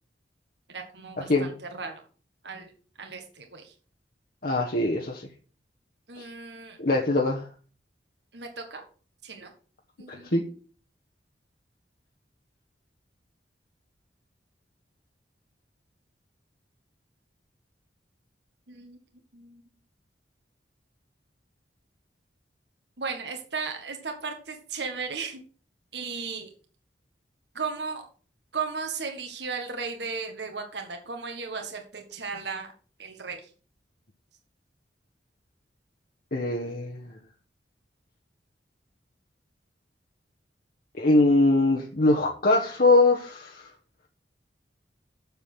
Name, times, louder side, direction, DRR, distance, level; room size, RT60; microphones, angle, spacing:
voice 1, 0.7-2.0 2.4-2.7 3.0-3.7 6.1-6.8 8.3-8.8 9.2-9.5 10.0-10.4 18.7-19.0 19.3-19.6 23.0-25.4 25.9-26.5 27.5-28.1 28.5-32.7 33.0-33.5, right 5 dB, 75° right, 4 dB, 1.6 m, -35 dB
voice 2, 4.4-5.3 6.2-6.3 6.8-7.5 10.1-10.5 36.3-37.2 40.9-43.7, left 2 dB, 55° left, 0 dB, 1.2 m, -22 dB
7.3 x 7.0 x 6.2 m, 0.40 s
head